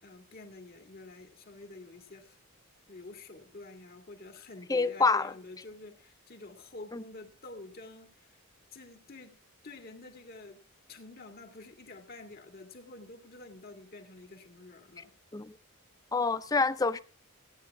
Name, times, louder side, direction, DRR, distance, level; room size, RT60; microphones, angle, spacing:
voice 1, 0.0-2.4 2.9-8.4 8.7-9.4 9.6-10.6 10.9-15.1, left 2 dB, 45° left, 2.2 m, -48 dB
voice 2, 4.7-5.3 6.9-7.0 15.3-15.6 16.1-17.0, left 4 dB, 15° left, 0.5 m, -27 dB
16.5 x 9.6 x 3.5 m
head